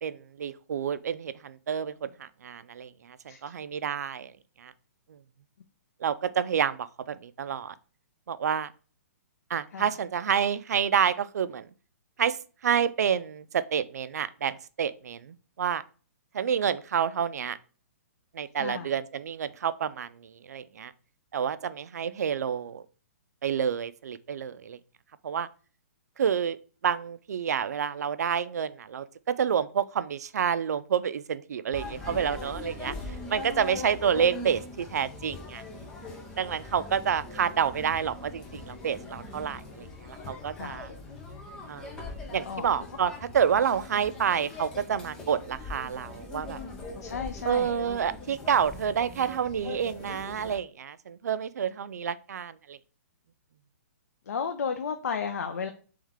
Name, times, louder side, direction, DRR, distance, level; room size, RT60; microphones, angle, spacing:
voice 1, 0.0-4.3 4.6-4.7 5.1-5.2 6.0-7.7 8.3-8.7 9.5-11.7 12.2-15.8 16.3-17.6 18.3-20.9 21.3-22.8 23.4-24.8 25.2-25.5 26.2-26.6 26.8-35.6 36.4-40.9 41.7-41.9 42.3-46.6 47.4-52.8, right 8 dB, 80° right, 15 dB, 0.4 m, -29 dB
sound 1, 31.7-50.6, left 3 dB, 5° left, 0.4 m, -41 dB
voice 2, 47.0-47.8 54.3-55.7, left 6 dB, 90° left, 6 dB, 0.5 m, -33 dB
3.5 x 3.1 x 3.5 m, 0.37 s
hypercardioid pair, 180°, 9 cm